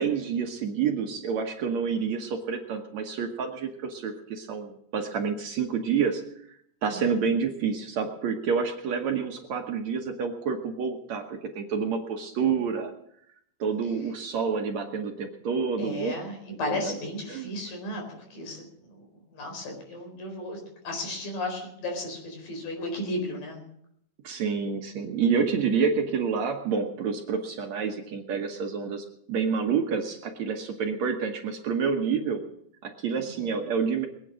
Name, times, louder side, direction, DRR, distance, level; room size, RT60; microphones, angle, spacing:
voice 1, 0.0-12.9 13.6-16.1 16.6-16.9 17.3-17.5 24.2-32.4 32.8-34.1, right 6 dB, 60° right, 3 dB, 2.1 m, -28 dB
voice 2, 6.9-7.2 15.8-18.0 18.3-19.1 19.3-23.6 33.2-33.5, left 1 dB, 75° left, 2 dB, 6.1 m, -34 dB
22.0 x 9.1 x 6.2 m, 0.72 s
omnidirectional pair, 4.0 m